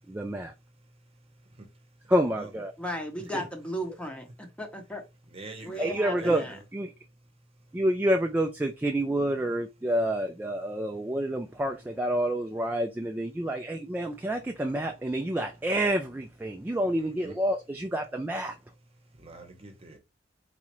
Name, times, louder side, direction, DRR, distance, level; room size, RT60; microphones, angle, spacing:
voice 1, 0.1-0.5 2.1-2.7 3.3-3.4 5.6-6.4 6.7-6.9 7.7-18.5, right 1 dB, 10° right, 0.3 m, -28 dB
voice 2, 2.8-5.0 5.6-6.6, equal, 5° left, 0.7 m, -36 dB
voice 3, 5.3-6.4 17.0-17.3 19.2-20.0, right 2 dB, 30° right, 0.9 m, -44 dB
4.1 x 2.4 x 3.0 m
head